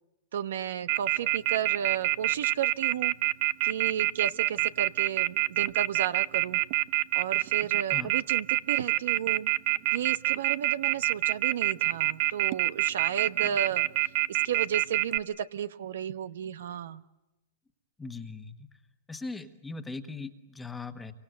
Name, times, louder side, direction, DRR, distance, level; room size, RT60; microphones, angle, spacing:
voice 1, 0.3-3.1 3.6-6.6 7.1-9.5 9.9-13.9 14.3-17.0, right 9 dB, 70° right, 13 dB, 1.0 m, -33 dB
Telephone, 0.9-15.2, right 18 dB, 45° right, 0.9 m, -25 dB
voice 2, 18.0-18.7 19.1-21.1, left 3 dB, 5° left, 7 dB, 1.4 m, -39 dB
28.5 x 25.0 x 8.1 m, 1.0 s
hypercardioid pair, 150°, 0 cm